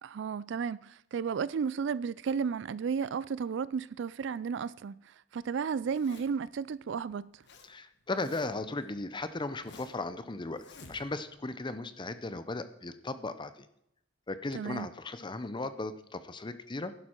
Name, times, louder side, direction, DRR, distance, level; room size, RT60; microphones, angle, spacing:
voice 1, 0.0-7.4 14.5-14.9, right 6 dB, 65° right, 0.4 m, -33 dB
Zipper (clothing), 5.8-6.5 7.1-7.7 7.9-8.7 9.2-10.1 10.5-11.3, left 3 dB, 60° left, 1.4 m, -53 dB
voice 2, 7.7-13.7 14.3-16.9, left 2 dB, 25° left, 0.6 m, -37 dB
11.5 x 11.0 x 4.5 m
head